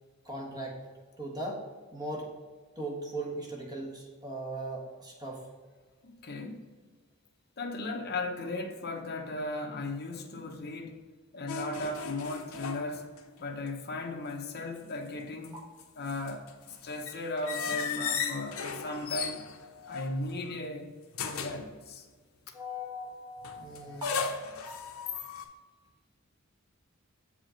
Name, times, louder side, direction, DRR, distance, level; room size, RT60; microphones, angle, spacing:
voice 1, 0.2-0.8 1.2-1.6 1.9-2.3 2.8-5.4 22.5-24.2, right 1 dB, 20° right, 1.4 m, -38 dB
voice 2, 6.0-6.6 7.6-11.0 11.3-13.1 13.4-15.6 15.9-19.4 19.9-20.9 21.2-22.1, left 2 dB, 50° left, 1.0 m, -36 dB
sound 1, 11.5-13.4 13.7-13.8 15.2-20.6 21.1-21.7 23.4-25.5, left 6 dB, 75° left, 0.7 m, -37 dB
7.3 x 4.9 x 3.9 m
head